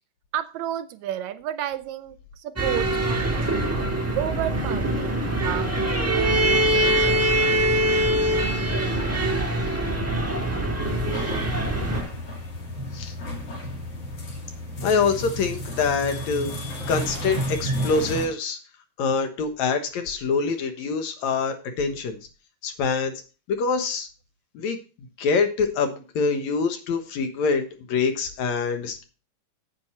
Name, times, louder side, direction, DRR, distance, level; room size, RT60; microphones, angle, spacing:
voice 1, 0.3-5.1 5.4-5.7 6.1-7.2, right 11 dB, 75° right, 12 dB, 1.8 m, -32 dB
sound 1, 2.6-12.0, right 1 dB, 15° right, 0.4 m, -23 dB
sound 2, 10.8-18.3, equal, 55° left, 3.3 m, -32 dB
voice 2, 14.8-16.5 16.9-18.6 19.0-22.2 22.6-23.1 23.5-24.1 24.5-24.8 25.2-29.0, left 5 dB, 70° left, 7 dB, 2.5 m, -25 dB
9.1 x 8.1 x 4.3 m, 0.34 s
omnidirectional pair, 3.4 m